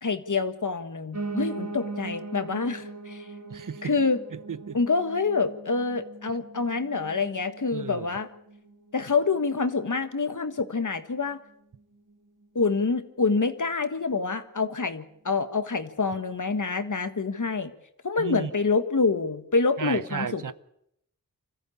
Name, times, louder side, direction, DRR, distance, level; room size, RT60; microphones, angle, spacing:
voice 1, 0.0-3.3 3.8-4.2 4.7-8.3 8.9-11.4 12.5-17.7 18.0-20.5, left 4 dB, 60° left, 1.6 m, -27 dB
Piano, 1.1-10.2 10.6-11.8 12.1-12.2 12.4-12.5 12.7-12.8 13.4-13.5, right 3 dB, 50° right, 3.0 m, -40 dB
voice 2, 3.5-3.9 4.3-4.8 7.7-8.1 18.2-18.5 19.8-20.5, right 6 dB, 65° right, 0.8 m, -33 dB
25.5 x 14.5 x 8.6 m
wide cardioid pair, 60°, 34 cm